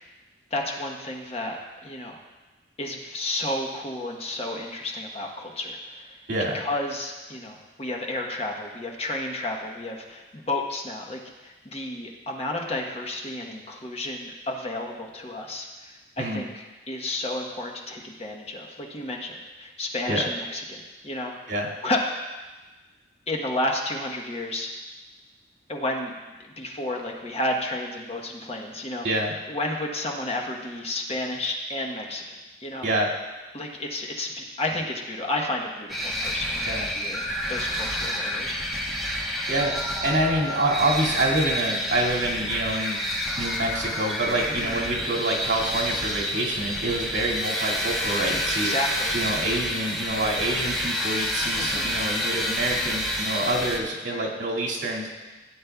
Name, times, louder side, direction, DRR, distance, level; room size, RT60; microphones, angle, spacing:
voice 1, 0.5-1.6 1.8-2.2 2.8-6.2 6.5-20.8 21.0-21.3 21.8-22.0 23.3-24.7 25.7-26.1 26.6-29.1 29.5-32.2 32.6-32.9 33.5-38.8 44.5-44.8 48.6-49.2 51.6-52.0 54.1-54.3, left 1 dB, 35° left, 0 dB, 1.0 m, -31 dB
voice 2, 29.0-29.4 32.8-33.1 36.7-36.9 39.5-39.8 40.0-43.0 43.4-48.7 49.1-55.1, right 1 dB, 75° right, -4 dB, 2.3 m, -26 dB
sound 1, 35.9-53.8, equal, ahead, 1.0 m, -29 dB
16.0 x 8.6 x 2.3 m, 1.2 s
head